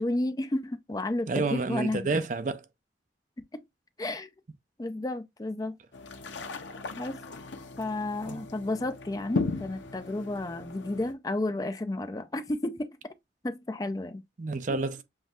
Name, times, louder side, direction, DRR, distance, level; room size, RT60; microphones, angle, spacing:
voice 1, 0.0-2.2 3.5-3.6 4.0-4.3 4.8-5.8 7.0-7.2 7.8-13.1 13.4-14.2, left 2 dB, 20° left, 0.4 m, -32 dB
voice 2, 1.3-2.6 8.3-8.4 14.4-15.0, right 3 dB, 45° right, 0.5 m, -29 dB
sound 1, 5.9-11.1, left 3 dB, 90° left, 0.7 m, -36 dB
7.1 x 2.7 x 2.4 m
head